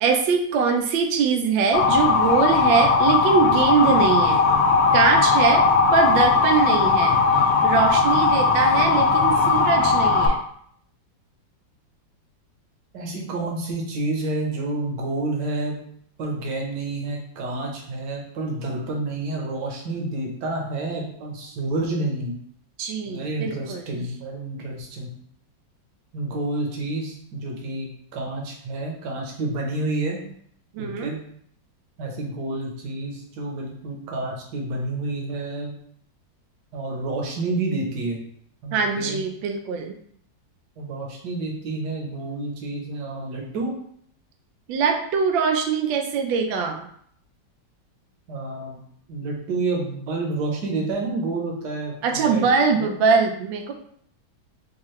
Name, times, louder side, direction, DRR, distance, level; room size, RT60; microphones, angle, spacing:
voice 1, 0.0-4.5 4.9-5.7 5.9-10.4 22.8-24.0 30.7-31.1 38.7-39.9 44.7-46.9 52.0-53.7, right 5 dB, 90° right, 4 dB, 1.3 m, -22 dB
Motor vehicle (road) / Siren, 1.7-10.3, left 4 dB, 65° left, 0.9 m, -18 dB
voice 2, 12.9-15.7 16.2-22.4 23.1-25.1 26.1-30.2 30.8-31.2 32.0-35.7 36.7-38.2 38.6-39.2 40.8-43.7 48.3-48.8 49.1-52.4 52.7-52.9, right 2 dB, 65° right, 0 dB, 1.4 m, -29 dB
4.6 x 2.4 x 3.1 m, 0.66 s
omnidirectional pair, 2.0 m